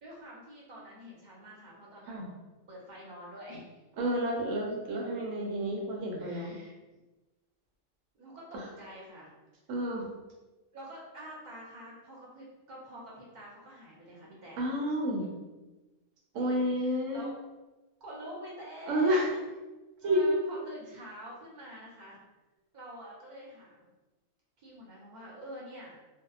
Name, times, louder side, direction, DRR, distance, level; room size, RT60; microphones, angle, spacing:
voice 1, 0.0-2.4 2.7-3.7 6.2-6.7 8.1-9.3 10.7-14.6 15.2-15.7 16.4-17.3 18.0-19.3 20.0-22.2 22.7-23.9 24.6-26.0, equal, 50° right, -5 dB, 0.6 m, -47 dB
voice 2, 4.0-6.6 8.5-8.6 9.7-10.1 14.6-15.3 16.3-17.2 18.9-19.3 20.0-20.4, equal, 85° right, -1 dB, 1.0 m, -30 dB
2.7 x 2.0 x 2.3 m, 1.1 s
omnidirectional pair, 1.3 m